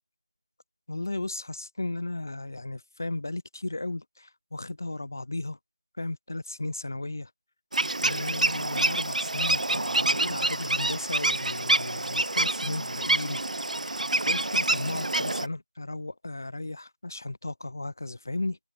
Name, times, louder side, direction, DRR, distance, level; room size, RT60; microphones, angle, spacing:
voice 1, 0.9-5.6 6.0-7.3 8.0-13.4 13.9-14.0 14.3-18.6, left 2 dB, 20° left, 0.4 m, -35 dB
sound 1, 7.7-15.5, right 2 dB, 60° right, 0.4 m, -27 dB
figure-of-eight pair, 175°, 5 cm